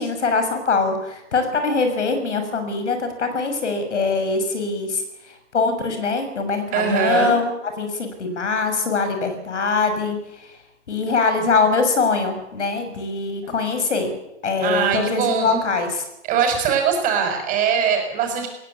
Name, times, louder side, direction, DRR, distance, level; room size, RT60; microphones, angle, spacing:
voice 1, 0.0-5.0 5.5-10.2 10.9-14.1 14.4-16.0, left 4 dB, 80° left, 7 dB, 6.7 m, -22 dB
voice 2, 6.7-7.4 13.4-13.5 14.6-15.6 16.3-18.5, right 6 dB, 25° right, 4 dB, 6.1 m, -21 dB
20.5 x 18.0 x 8.5 m, 0.90 s
hypercardioid pair, 150°, 35 cm